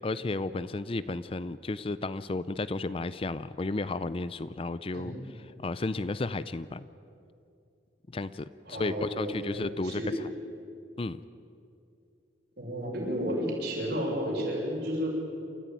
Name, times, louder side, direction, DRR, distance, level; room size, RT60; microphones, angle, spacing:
voice 1, 0.0-5.1 5.6-6.9 8.1-10.0 11.0-11.2, left 3 dB, 30° left, 15 dB, 0.5 m, -33 dB
voice 2, 8.7-10.2 12.6-15.1, equal, 55° right, -2 dB, 7.0 m, -32 dB
28.5 x 14.5 x 9.3 m, 2.6 s
head